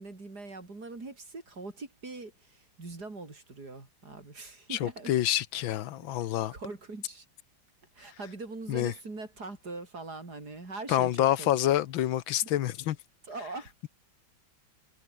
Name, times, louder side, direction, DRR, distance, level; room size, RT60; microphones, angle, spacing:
voice 1, 0.0-5.1 6.2-7.3 7.9-11.6 13.2-13.9, right 3 dB, 50° right, 5.1 m, -42 dB
voice 2, 4.7-6.5 8.7-8.9 10.9-13.0, left 12 dB, 80° left, 1.7 m, -27 dB
omnidirectional pair, 2.1 m